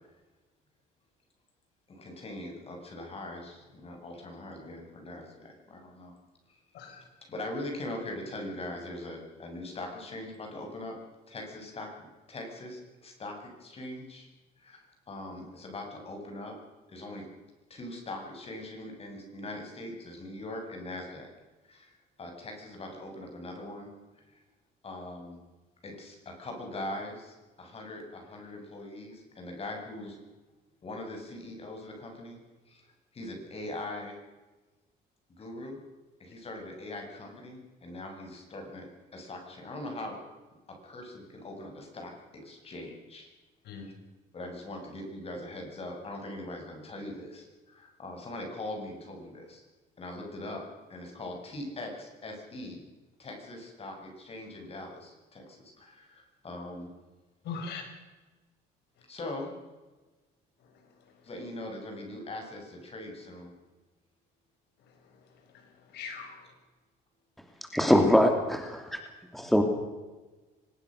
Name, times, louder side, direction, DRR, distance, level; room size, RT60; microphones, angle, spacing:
voice 1, 1.9-6.1 6.5-6.6 7.3-11.0 11.3-14.3 14.6-16.5 16.9-17.3 17.7-21.3 21.6-23.9 24.2-24.4 24.8-25.4 25.8-30.2 30.8-32.4 32.7-32.9 33.1-34.2 35.3-35.8 36.2-40.2 40.7-43.3 44.3-49.6 50.0-50.6 50.9-52.8 53.2-56.9 59.1-59.5 61.2-63.5, left 1 dB, 35° left, 2 dB, 7.5 m, -41 dB
voice 2, 6.7-7.1 43.6-43.9 57.4-57.8 60.6-61.3 64.8-66.5, left 5 dB, 80° left, 5 dB, 5.3 m, -43 dB
voice 3, 67.7-69.0 69.3-69.6, equal, ahead, 4 dB, 2.9 m, -23 dB
24.0 x 20.5 x 6.5 m, 1.2 s
cardioid pair, 110°, 17 cm